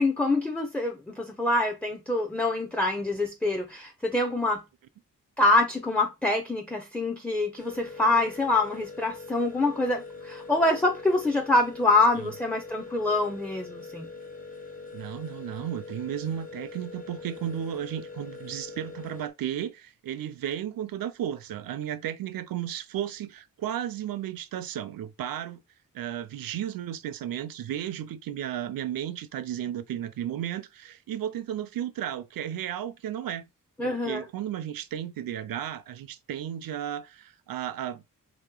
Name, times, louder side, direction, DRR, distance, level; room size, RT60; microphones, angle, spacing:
voice 1, 0.0-4.6 5.4-14.1 33.8-34.2, left 2 dB, 5° left, 0.5 m, -25 dB
sound 1, 7.6-19.3, left 4 dB, 25° left, 1.1 m, -43 dB
voice 2, 14.9-25.6 25.9-33.4 33.8-38.0, right 10 dB, 85° right, 0.5 m, -34 dB
3.6 x 2.9 x 3.7 m
wide cardioid pair, 130°, 34 cm